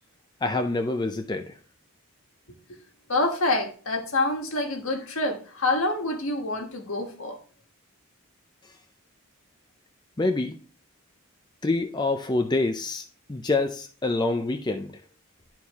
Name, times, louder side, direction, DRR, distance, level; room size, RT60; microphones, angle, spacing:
voice 1, 0.4-1.5 10.2-10.6 11.6-14.9, left 2 dB, 20° left, 0.5 m, -26 dB
voice 2, 3.1-7.4, left 2 dB, 65° left, 1.5 m, -27 dB
11.0 x 4.5 x 3.6 m
head